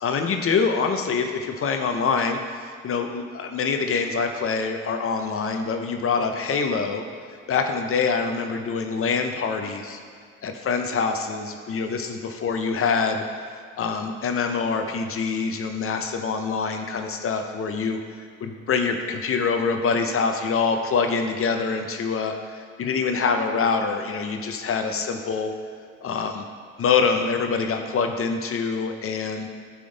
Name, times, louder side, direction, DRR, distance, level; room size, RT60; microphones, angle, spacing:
voice 1, 0.0-7.0 7.5-10.0 10.4-13.2 13.8-18.0 18.4-25.5 26.0-26.4 26.8-29.5, left 5 dB, 50° left, 5 dB, 0.5 m, -25 dB
8.6 x 3.5 x 3.9 m, 2.1 s
cardioid pair, 90°, 30 cm